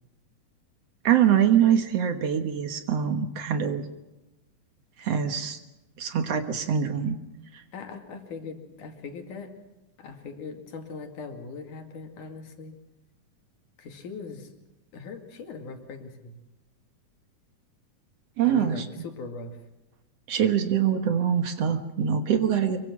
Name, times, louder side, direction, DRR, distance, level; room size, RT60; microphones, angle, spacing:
voice 1, 1.0-3.8 5.0-5.6 6.0-7.2 18.4-18.8 20.3-22.8, right 8 dB, 60° right, 8 dB, 2.2 m, -24 dB
voice 2, 7.7-9.5 10.0-12.8 13.8-14.6 14.9-16.3 18.5-19.6, left 4 dB, 80° left, 4 dB, 3.9 m, -40 dB
24.5 x 23.5 x 6.1 m, 0.98 s
omnidirectional pair, 3.5 m